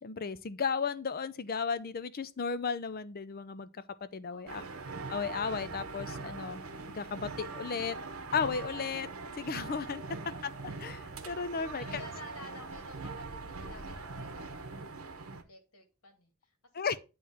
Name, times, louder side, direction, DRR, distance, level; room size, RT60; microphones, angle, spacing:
voice 1, 0.0-3.7 4.1-4.7 5.1-8.0 8.3-9.1 9.4-10.0 10.4-10.5 10.8-11.8 16.7-17.0, left 5 dB, 45° left, 0.5 m, -34 dB
voice 2, 4.3-4.7 11.7-16.9, left 2 dB, 85° left, 2.0 m, -53 dB
sound 1, 4.5-15.4, right 3 dB, 70° right, 1.1 m, -42 dB
9.3 x 3.1 x 5.6 m
head